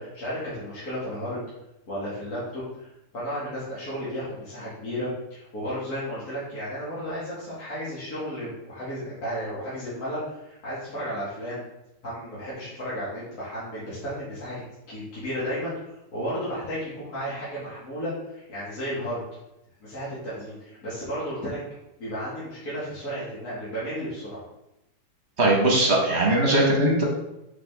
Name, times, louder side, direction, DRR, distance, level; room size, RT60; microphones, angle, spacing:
voice 1, 0.0-1.4 1.9-11.6 12.0-19.2 19.8-21.6 22.0-24.4, equal, 50° left, -11 dB, 2.4 m, -33 dB
voice 2, 25.4-27.0, right 1 dB, 40° right, -3 dB, 1.5 m, -20 dB
6.0 x 4.7 x 3.5 m, 0.89 s
omnidirectional pair, 2.1 m